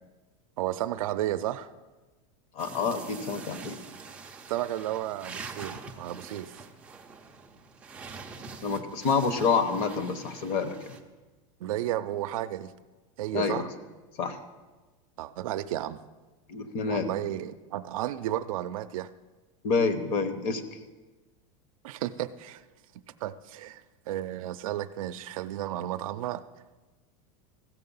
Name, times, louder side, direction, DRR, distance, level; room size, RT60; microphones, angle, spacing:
voice 1, 0.6-1.7 4.5-6.6 11.6-12.7 13.2-13.7 15.2-16.0 16.9-19.1 21.8-22.6 23.2-26.4, right 13 dB, 85° right, 9 dB, 0.5 m, -33 dB
voice 2, 2.6-3.8 8.6-11.0 13.3-13.7 14.2-14.4 16.5-17.1 19.6-20.6, left 5 dB, 35° left, 10 dB, 0.9 m, -28 dB
sound 1, 2.6-11.0, right 4 dB, 5° right, 0.4 m, -45 dB
15.0 x 6.6 x 5.5 m, 1.2 s
supercardioid pair, 170°, 17 cm